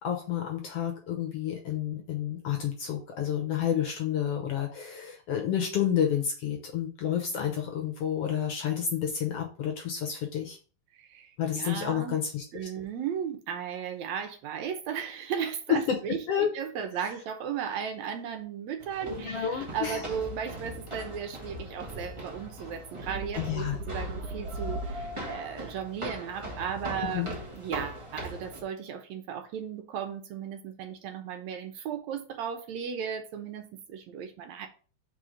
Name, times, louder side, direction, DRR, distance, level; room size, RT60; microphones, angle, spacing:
voice 1, 0.0-10.6 11.4-12.4 15.9-16.0 16.3-16.5 19.0-20.1 23.4-23.8 27.1-27.3, left 9 dB, 65° left, 2 dB, 1.6 m, -30 dB
voice 2, 11.0-12.2 12.5-16.2 16.5-27.3 27.5-34.7, right 8 dB, 70° right, 5 dB, 2.0 m, -36 dB
sound 1, 18.8-28.6, equal, 45° right, 0.4 m, -40 dB
sound 2, 23.0-25.5 26.4-27.4, right 2 dB, 90° right, 2.4 m, -38 dB
4.9 x 4.1 x 5.1 m, 0.38 s
omnidirectional pair, 3.5 m